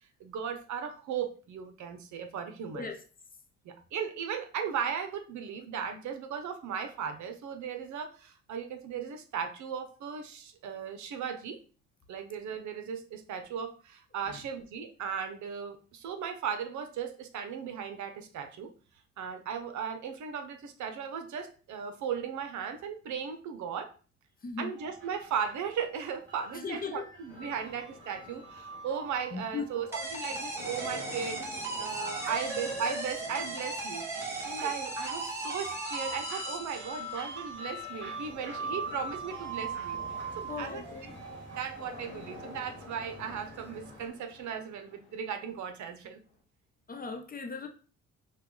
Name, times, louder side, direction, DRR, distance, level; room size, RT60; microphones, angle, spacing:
voice 1, 0.2-2.9 3.6-11.6 12.1-18.7 19.2-23.9 24.6-31.4 31.8-34.1 34.4-40.8 41.5-46.2, right 7 dB, 70° right, 0.8 m, -37 dB
sound 1, 24.8-44.1, right 3 dB, 40° right, 1.8 m, -43 dB
voice 2, 26.5-27.1 29.3-29.7 31.9-32.0 32.2-32.5 34.6-34.7 40.5-41.1 46.9-47.7, left 4 dB, 30° left, 0.7 m, -38 dB
sound 2, 27.3-46.3, left 4 dB, 85° left, 1.0 m, -51 dB
sound 3, 29.9-37.3, right 2 dB, 10° right, 1.1 m, -37 dB
5.7 x 2.3 x 3.1 m
cardioid pair, 90°, 30 cm